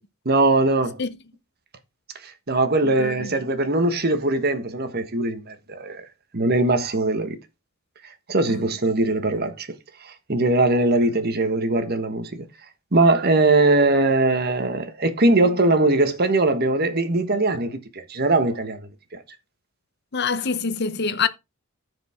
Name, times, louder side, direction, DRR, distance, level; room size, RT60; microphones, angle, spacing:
voice 1, 0.2-1.0 2.2-6.0 6.3-7.4 8.3-9.7 10.0-12.4 12.9-18.8, right 2 dB, 50° right, 1.3 m, -21 dB
voice 2, 2.8-3.3 8.5-8.6 20.1-21.3, left 5 dB, 50° left, 0.7 m, -25 dB
14.0 x 5.0 x 3.6 m
head